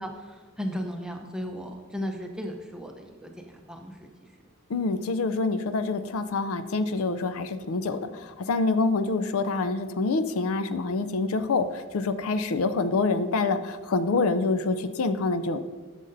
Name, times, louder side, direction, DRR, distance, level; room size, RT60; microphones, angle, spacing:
voice 1, 0.0-4.3, equal, 5° right, 3 dB, 0.6 m, -36 dB
voice 2, 4.7-15.6, left 3 dB, 70° left, 12 dB, 0.4 m, -26 dB
12.5 x 6.5 x 2.6 m, 1.4 s
head